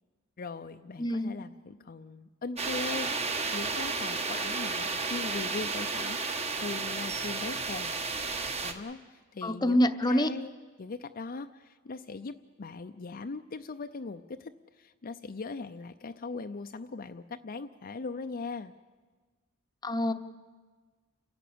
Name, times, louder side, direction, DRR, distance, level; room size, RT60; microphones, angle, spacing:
voice 1, 0.4-6.2 6.6-7.9 8.6-18.7, left 3 dB, 45° left, 7 dB, 0.5 m, -40 dB
voice 2, 1.0-1.3 9.4-10.3 19.8-20.1, left 1 dB, 20° left, 9 dB, 0.8 m, -26 dB
sound 1, 2.6-8.7, right 4 dB, 30° right, 1.3 m, -32 dB
30.0 x 11.0 x 8.7 m, 1.4 s
head